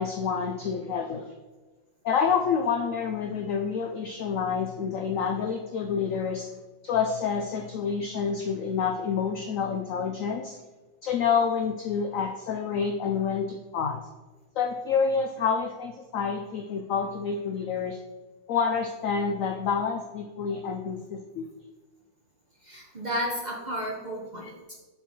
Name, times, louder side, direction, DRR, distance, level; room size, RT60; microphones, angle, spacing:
voice 1, 0.0-1.4 2.0-6.5 6.8-10.6 11.0-14.0 14.6-18.0 18.5-21.5 24.4-24.5, left 6 dB, 80° left, 5 dB, 0.7 m, -28 dB
voice 2, 22.6-24.7, equal, 35° right, -2 dB, 0.8 m, -33 dB
6.1 x 5.4 x 4.3 m, 1.2 s
omnidirectional pair, 2.0 m